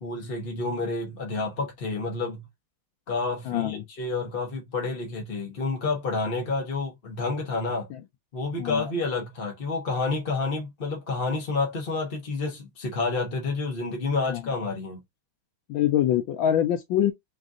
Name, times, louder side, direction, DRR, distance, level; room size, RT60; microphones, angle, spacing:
voice 1, 0.0-2.5 3.1-7.9 8.3-15.0, left 3 dB, 40° left, 0.8 m, -29 dB
voice 2, 3.4-3.9 7.9-8.0 8.6-8.9 14.2-14.4 15.7-17.1, left 11 dB, 75° left, 1.3 m, -24 dB
3.9 x 2.5 x 3.6 m
omnidirectional pair, 2.3 m